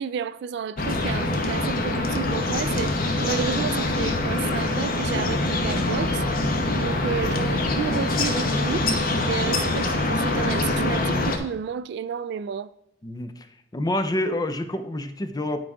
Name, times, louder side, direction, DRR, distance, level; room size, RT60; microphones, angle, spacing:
voice 1, 0.0-6.2 6.7-8.9 9.2-12.7, right 7 dB, 60° right, 0.3 m, -31 dB
sound 1, 0.8-11.4, left 2 dB, 50° left, 0.9 m, -24 dB
voice 2, 13.0-13.5 13.7-15.6, left 1 dB, 20° left, 0.5 m, -27 dB
9.4 x 4.8 x 3.6 m
head